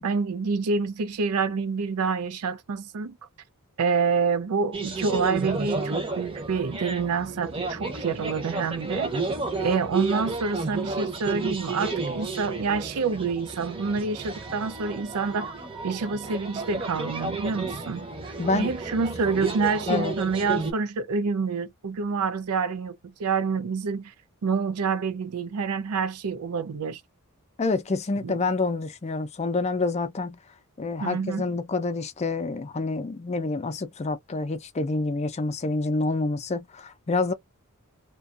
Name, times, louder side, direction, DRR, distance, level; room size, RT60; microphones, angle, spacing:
voice 1, 0.0-3.2 3.8-9.1 9.6-15.5 15.8-24.1 24.4-27.0 28.2-28.4 31.0-31.4, right 5 dB, 80° right, 0.5 m, -27 dB
sound 1, 4.7-20.7, right 3 dB, 25° right, 0.6 m, -32 dB
voice 2, 18.4-18.7 19.9-20.1 27.6-30.4 30.8-37.3, left 3 dB, 30° left, 0.4 m, -27 dB
2.4 x 2.3 x 2.4 m
head